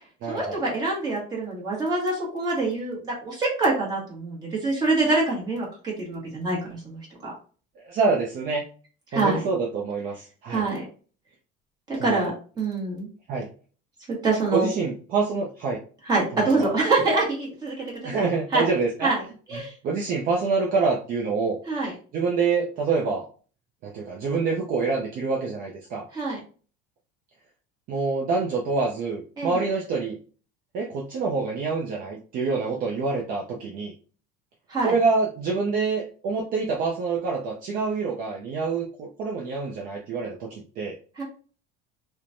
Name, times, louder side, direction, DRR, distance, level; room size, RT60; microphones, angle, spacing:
voice 1, 0.3-7.3 9.1-9.4 10.5-10.8 11.9-12.3 12.6-13.1 14.1-14.7 16.1-17.7 18.0-18.7 19.0-19.2 19.5-19.7 21.7-21.9 26.1-26.4 29.4-29.6 34.7-34.9 41.2-41.3, right 3 dB, 20° right, -4 dB, 1.1 m, -25 dB
voice 2, 7.8-8.6 9.1-10.6 12.0-12.3 13.3-13.5 14.5-15.8 16.6-16.7 18.0-19.1 19.5-21.6 22.1-23.2 23.8-26.1 27.9-30.2 30.7-33.9 34.8-41.0, right 4 dB, 45° right, -2 dB, 0.5 m, -26 dB
3.0 x 2.2 x 2.5 m, 0.39 s
cardioid pair, 165°, 21 cm